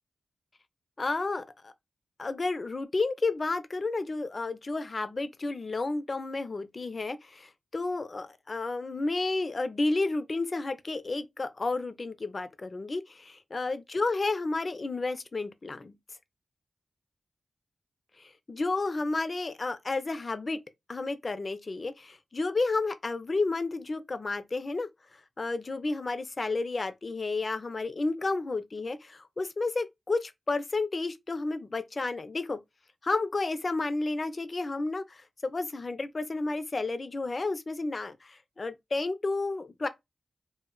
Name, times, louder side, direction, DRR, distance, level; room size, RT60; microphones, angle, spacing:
voice 1, 1.0-1.7 2.2-16.0 18.2-20.6 20.9-24.9 25.4-32.6 33.0-39.9, left 3 dB, 40° left, 0.4 m, -31 dB
2.2 x 2.0 x 3.7 m
wide cardioid pair, 80°, 0 cm